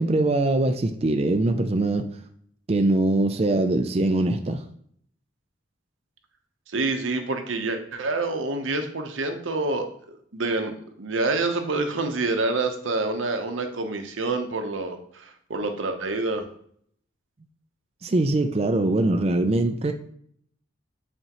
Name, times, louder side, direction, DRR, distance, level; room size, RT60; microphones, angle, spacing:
voice 1, 0.0-2.1 2.7-4.7 18.0-19.9, right 2 dB, 30° right, 0.4 m, -22 dB
voice 2, 6.7-16.4, right 3 dB, 90° right, 0.8 m, -27 dB
8.0 x 4.3 x 3.0 m
head